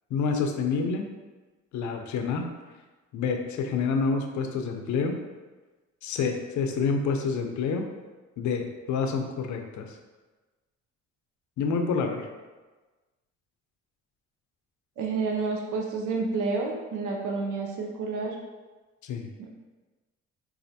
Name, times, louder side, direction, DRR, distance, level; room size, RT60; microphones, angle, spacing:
voice 1, 0.1-1.0 1.7-2.5 3.1-5.2 6.0-7.9 8.4-9.9 11.6-12.3 19.0-19.3, left 5 dB, 75° left, 4 dB, 0.5 m, -28 dB
voice 2, 15.0-18.4 19.4-19.5, right 4 dB, 80° right, 0 dB, 0.5 m, -29 dB
4.1 x 2.5 x 2.7 m, 1.3 s
cardioid pair, 90°, 30 cm